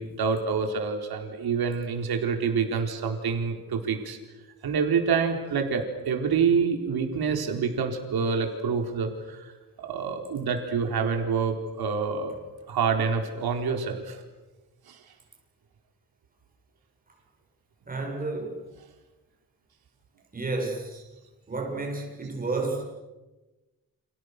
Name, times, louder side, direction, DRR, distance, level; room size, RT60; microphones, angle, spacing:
voice 1, 0.0-4.2 4.6-9.5 9.8-12.3 12.7-14.2 14.9-15.0, right 5 dB, 85° right, 4 dB, 4.4 m, -27 dB
voice 2, 17.9-18.7 20.3-21.0 21.5-22.8, right 3 dB, 25° right, 0 dB, 7.0 m, -31 dB
30.0 x 29.0 x 6.8 m, 1.1 s
wide cardioid pair, 175°, 36 cm